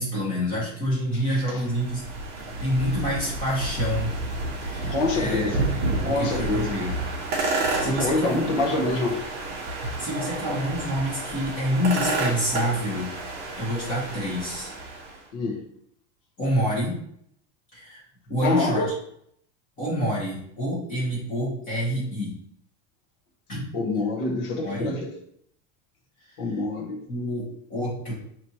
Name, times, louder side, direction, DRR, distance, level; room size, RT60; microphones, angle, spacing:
voice 1, 0.0-2.0 2.6-4.1 4.6-7.0 7.8-8.9 10.0-13.1 13.6-14.7 16.4-17.0 17.7-18.9 19.8-22.3 23.5-23.7 24.6-25.0 26.3-26.4 27.1-28.1, equal, 20° left, -7 dB, 1.8 m, -28 dB
sound 1, 1.2-15.2, right 2 dB, 25° right, 0.9 m, -30 dB
voice 2, 4.9-5.6 6.0-6.8 7.8-9.2 15.3-15.6 18.4-18.9 23.7-25.1 26.4-27.0, left 2 dB, 45° left, 0 dB, 1.0 m, -26 dB
5.9 x 3.0 x 2.9 m, 0.69 s
supercardioid pair, 175°, 37 cm